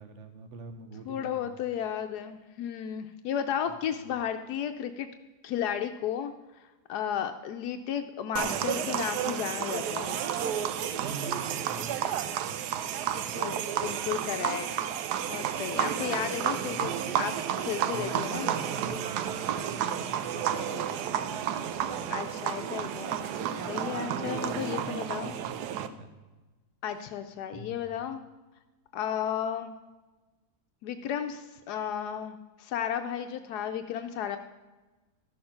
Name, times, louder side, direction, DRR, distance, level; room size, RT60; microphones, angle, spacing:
voice 1, 0.0-1.6 3.9-4.1 10.9-12.2 15.8-16.9 17.9-20.9 23.6-26.1 27.5-27.8, right 3 dB, 55° right, 7 dB, 1.2 m, -44 dB
voice 2, 1.1-5.1 5.4-10.2 13.3-15.0 15.3-17.3 17.6-18.5 22.1-23.2 23.7-25.4 26.8-28.2 28.9-29.7 30.8-34.4, left 9 dB, 85° left, 7 dB, 1.1 m, -34 dB
sound 1, 8.4-25.9, right 9 dB, 90° right, 1.2 m, -31 dB
12.5 x 6.5 x 5.7 m, 1.2 s
omnidirectional pair, 1.7 m